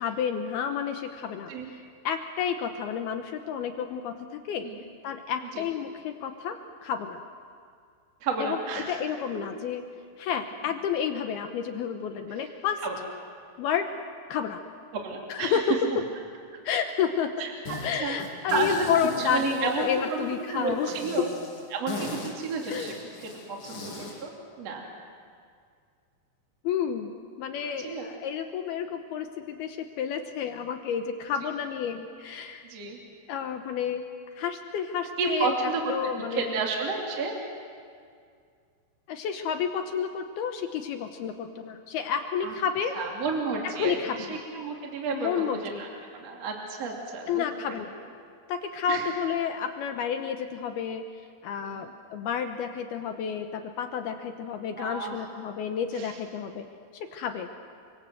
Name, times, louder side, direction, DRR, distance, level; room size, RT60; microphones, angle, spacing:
voice 1, 0.0-1.5 2.0-4.1 4.5-4.7 5.0-6.6 6.8-7.2 8.4-8.6 8.9-9.8 10.2-12.8 13.6-13.9 14.3-14.6 15.3-15.6 16.6-17.3 17.8-20.9 22.7-23.0 26.6-32.7 33.3-34.0 34.3-35.5 35.9-36.5 39.1-43.0 43.8-44.4 45.1-45.8 47.3-47.9 48.5-51.0 51.4-56.7 57.1-57.5, left 7 dB, 75° left, 6 dB, 2.4 m, -30 dB
voice 2, 8.2-9.0 9.3-9.5 12.3-12.5 12.8-13.1 14.9-15.6 15.9-16.0 16.5-16.6 17.4-18.8 19.2-21.3 21.7-24.9 27.8-28.1 32.6-33.0 35.2-35.9 36.3-37.4 42.4-42.5 42.9-47.8 48.9-49.1 51.7-51.8 54.8-55.3 55.9-56.2, right 4 dB, 40° right, 0 dB, 3.1 m, -32 dB
sound 1, 17.7-17.9 18.2-20.3 20.8-24.2, left 2 dB, 45° left, 8.0 m, -40 dB
29.5 x 24.5 x 7.8 m, 2.2 s
omnidirectional pair, 5.6 m